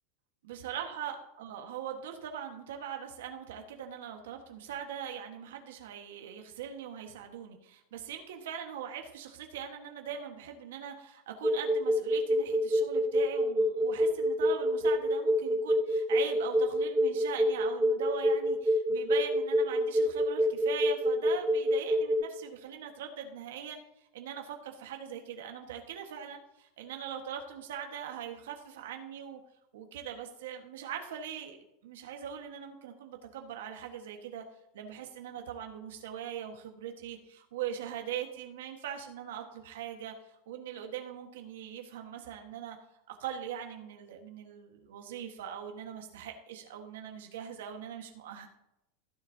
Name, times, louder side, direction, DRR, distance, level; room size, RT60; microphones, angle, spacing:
voice 1, 0.4-23.8 24.1-29.4 29.7-31.6 31.8-34.4 34.7-40.1 40.5-42.8 43.1-48.5, right 8 dB, 85° right, 4 dB, 1.4 m, -41 dB
sound 1, 11.4-22.2, right 1 dB, 5° left, 2.4 m, -26 dB
15.5 x 7.4 x 2.8 m, 0.87 s
supercardioid pair, 160°, 0 cm